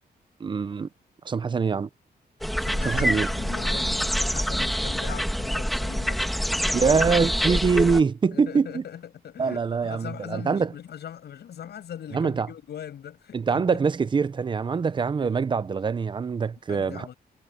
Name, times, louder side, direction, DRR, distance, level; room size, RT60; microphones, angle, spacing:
voice 1, 0.4-0.9 1.2-1.9 2.8-3.3 6.7-8.8 9.4-10.7 12.1-12.5 13.3-17.1, right 5 dB, 30° right, 0.6 m, -24 dB
sound 1, 2.4-8.0, equal, ahead, 2.0 m, -26 dB
voice 2, 2.6-6.2 6.7-6.9 8.3-13.8 16.7-17.1, left 9 dB, 80° left, 7.4 m, -40 dB
wide cardioid pair, 175°, 17 cm